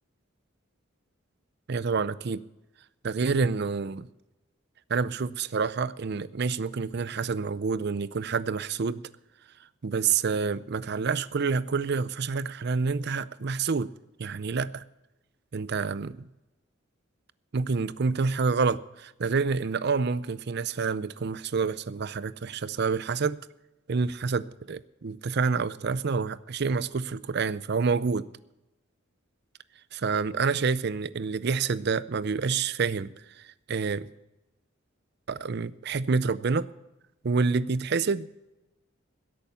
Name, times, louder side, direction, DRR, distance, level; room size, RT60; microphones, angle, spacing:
voice 1, 1.7-2.4 3.0-4.1 4.9-9.0 9.8-13.9 14.2-14.8 15.5-16.3 17.5-23.4 23.9-28.3 29.9-34.1 35.3-36.7 37.2-38.3, right 5 dB, 55° right, 17 dB, 0.5 m, -28 dB
16.5 x 8.7 x 6.9 m, 0.97 s
head